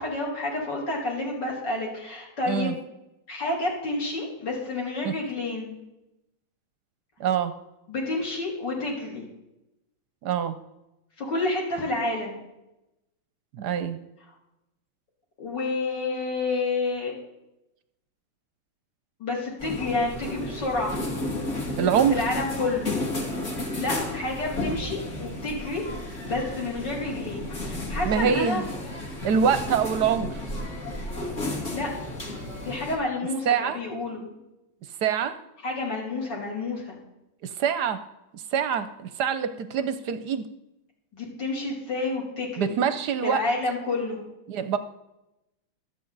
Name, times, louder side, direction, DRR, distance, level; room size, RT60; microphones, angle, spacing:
voice 1, 0.0-2.8 3.3-5.8 7.9-9.3 11.2-12.4 15.4-17.2 19.2-21.0 22.1-22.9 23.8-25.8 26.3-28.6 31.7-31.9 32.6-34.4 35.6-37.0 41.1-42.8 43.2-44.2, left 2 dB, 60° left, -2 dB, 3.5 m, -29 dB
voice 2, 2.5-2.8 5.0-5.2 7.2-7.5 10.2-10.6 13.5-14.0 21.8-22.2 28.0-28.7 29.2-30.4 33.5-33.8 35.0-35.4 37.4-38.0 38.3-40.5 42.6-43.4 44.5-44.8, right 7 dB, 65° right, 11 dB, 1.1 m, -25 dB
sound 1, 19.6-33.0, left 1 dB, 35° left, 2.6 m, -32 dB
24.5 x 8.2 x 4.0 m, 0.93 s
omnidirectional pair, 2.3 m